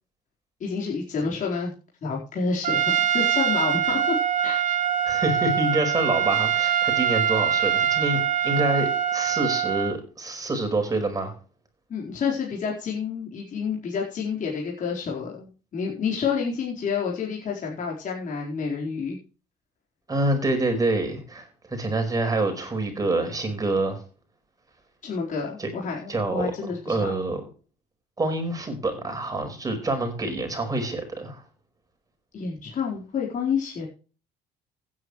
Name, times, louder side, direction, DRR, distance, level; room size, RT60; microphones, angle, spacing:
voice 1, 0.6-1.7 2.0-4.1 4.4-4.6 11.9-19.2 25.0-27.1 32.3-33.9, left 5 dB, 50° left, -3 dB, 4.4 m, -29 dB
Trumpet, 2.6-10.0, right 9 dB, 45° right, 1.3 m, -23 dB
voice 2, 5.0-11.3 20.1-24.0 25.6-25.7 26.1-26.5 26.8-27.4 28.2-31.4, right 2 dB, 20° right, 4 dB, 5.1 m, -26 dB
16.0 x 9.6 x 3.2 m, 0.36 s
cardioid pair, 110°, 17 cm